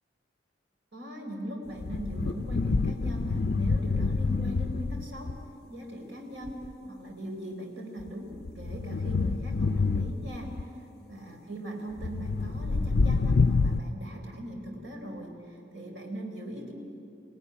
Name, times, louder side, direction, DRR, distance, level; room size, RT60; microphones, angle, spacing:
voice 1, 0.9-5.3 5.7-10.5 11.1-16.7, right 1 dB, 80° right, 1 dB, 4.2 m, -40 dB
sound 1, 1.7-5.4 6.5-6.7 8.0-10.6 12.0-13.8, left 4 dB, 60° left, 0.5 m, -27 dB
25.5 x 18.0 x 9.8 m, 2.6 s
head